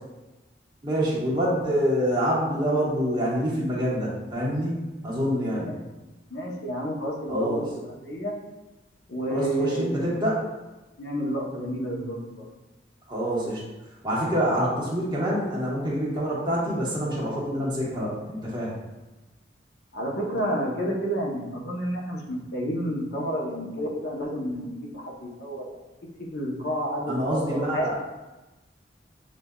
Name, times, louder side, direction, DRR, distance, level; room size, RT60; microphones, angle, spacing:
voice 1, 0.8-5.7 7.3-7.6 9.3-10.4 13.1-13.6 14.0-18.7 27.1-28.0, equal, 25° right, -6 dB, 1.1 m, -26 dB
voice 2, 6.3-8.3 9.1-10.0 11.0-12.5 19.9-25.8 26.3-28.0, right 1 dB, 70° left, -2 dB, 0.8 m, -30 dB
7.3 x 2.5 x 2.3 m, 1.1 s
head